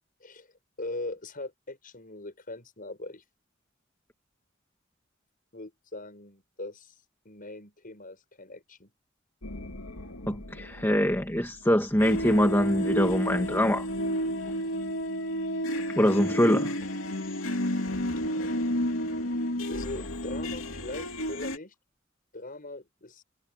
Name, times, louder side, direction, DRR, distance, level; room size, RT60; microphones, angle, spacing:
voice 1, 0.2-0.5 0.8-3.2 5.5-6.9 7.3-8.9 18.3-18.6 19.7-21.7 22.3-23.2, left 2 dB, 45° left, 7.2 m, -41 dB
sound 1, 9.4-11.4 11.9-21.6, equal, 85° left, 2.7 m, -31 dB
voice 2, 10.3-13.9 16.0-16.7, equal, 10° left, 2.0 m, -24 dB
head